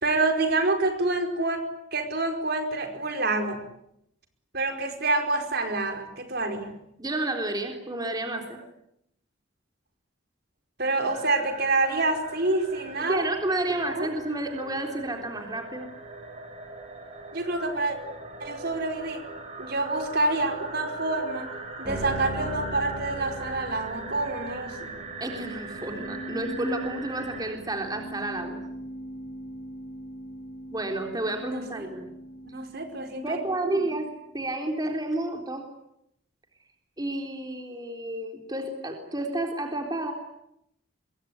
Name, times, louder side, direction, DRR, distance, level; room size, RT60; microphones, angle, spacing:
voice 1, 0.0-1.6 1.9-3.6 4.5-6.8 10.8-13.3 13.9-14.1 17.3-18.0 18.4-19.3 19.6-21.5 21.8-24.9 31.4-31.9 32.5-33.8, right 2 dB, 55° right, 6 dB, 4.9 m, -27 dB
voice 2, 7.0-8.6 13.1-15.9 25.2-28.6 30.7-32.1 33.2-34.1 34.3-35.6 37.0-40.1, right 1 dB, 20° right, 3 dB, 3.8 m, -31 dB
sound 1, 11.1-27.5, right 2 dB, 35° right, 6.2 m, -41 dB
sound 2, 21.8-34.2, right 1 dB, 5° right, 6.8 m, -40 dB
26.5 x 23.0 x 9.8 m, 0.77 s
head